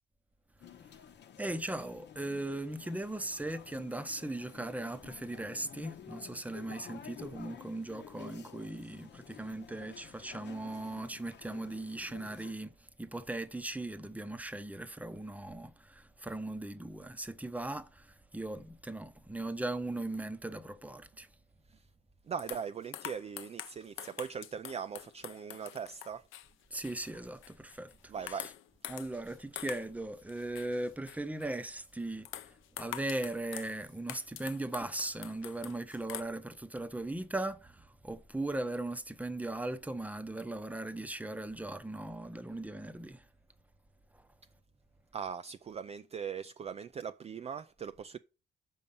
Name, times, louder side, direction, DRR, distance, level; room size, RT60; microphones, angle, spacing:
sound 1, 0.6-12.5, left 8 dB, 60° left, 1.0 m, -52 dB
voice 1, 1.4-21.3 26.7-28.5 28.9-43.3 44.1-44.3, right 2 dB, 5° right, 0.8 m, -38 dB
voice 2, 22.3-26.3 28.1-28.5 45.1-48.2, right 7 dB, 30° right, 0.4 m, -40 dB
sound 2, 22.4-28.0 28.3-30.0 30.3-31.6 32.2-33.7 34.1-36.2, left 13 dB, 90° left, 0.6 m, -46 dB
6.4 x 5.4 x 7.0 m
cardioid pair, 90°, 20 cm